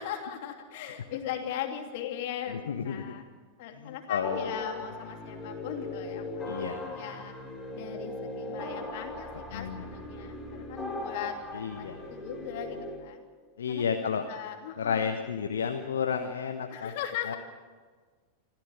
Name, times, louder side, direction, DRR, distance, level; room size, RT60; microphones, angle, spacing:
voice 1, 0.0-3.2 3.6-7.4 7.7-13.2 13.7-13.8 14.3-15.1 16.7-17.4, left 10 dB, 50° left, 4 dB, 2.9 m, -39 dB
voice 2, 2.5-3.1 3.8-4.5 6.4-6.8 9.5-9.8 11.5-12.0 13.6-14.2 14.8-16.9 17.3-17.4, left 7 dB, 65° left, 6 dB, 1.2 m, -31 dB
sound 1, 4.2-13.0, left 1 dB, 10° left, 5.8 m, -39 dB
25.5 x 15.0 x 7.5 m, 1.5 s
figure-of-eight pair, 90°, 0 cm